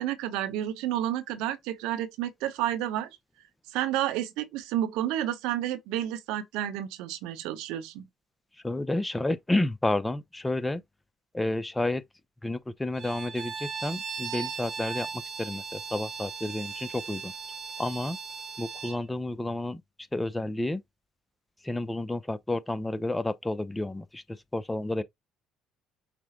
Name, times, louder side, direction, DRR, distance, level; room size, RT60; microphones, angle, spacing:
voice 1, 0.0-3.1 3.7-8.0, right 12 dB, 75° right, 0.8 m, -30 dB
voice 2, 8.6-10.8 11.3-12.0 12.4-17.3 17.8-18.2 18.6-19.8 20.1-20.8 21.6-25.0, left 2 dB, 15° left, 0.6 m, -30 dB
Bowed string instrument, 12.9-19.0, right 5 dB, 50° right, 1.0 m, -38 dB
5.9 x 2.2 x 3.8 m
hypercardioid pair, 60°, 0 cm